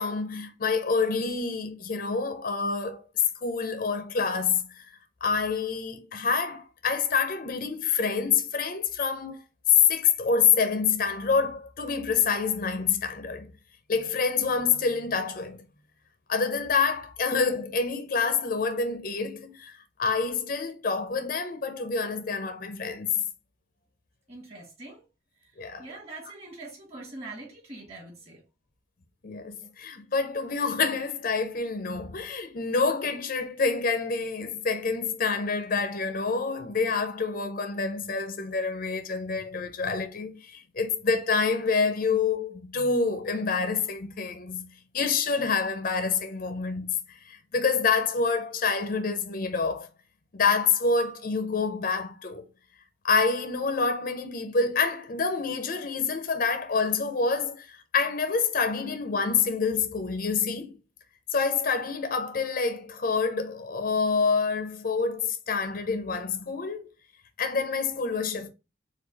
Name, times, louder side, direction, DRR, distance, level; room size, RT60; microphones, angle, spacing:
voice 1, 0.0-3.1 3.4-4.9 5.2-9.4 9.9-13.5 13.9-15.6 16.3-23.1 25.6-25.9 29.2-44.7 44.9-49.9 50.3-52.4 53.0-60.8 61.3-66.9 67.4-68.5, left 5 dB, 45° left, 0.6 m, -27 dB
voice 2, 24.3-25.1 25.8-28.4, right 2 dB, 30° right, 1.7 m, -43 dB
4.6 x 2.4 x 3.9 m
head